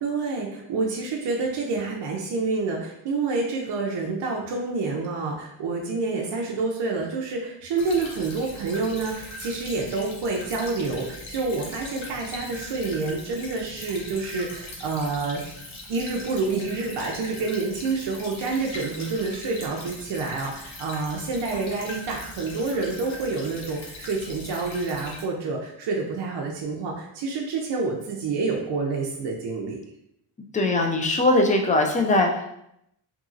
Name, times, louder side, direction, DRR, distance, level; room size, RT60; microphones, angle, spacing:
voice 1, 0.0-15.5 15.9-29.8, right 3 dB, 60° right, -1 dB, 0.6 m, -28 dB
Stream / Trickle dribble, 7.8-25.2, left 2 dB, 70° left, 0.9 m, -40 dB
voice 2, 30.5-32.5, left 2 dB, 20° left, 2 dB, 0.3 m, -21 dB
2.9 x 2.7 x 2.4 m, 0.76 s
cardioid pair, 105°, 49 cm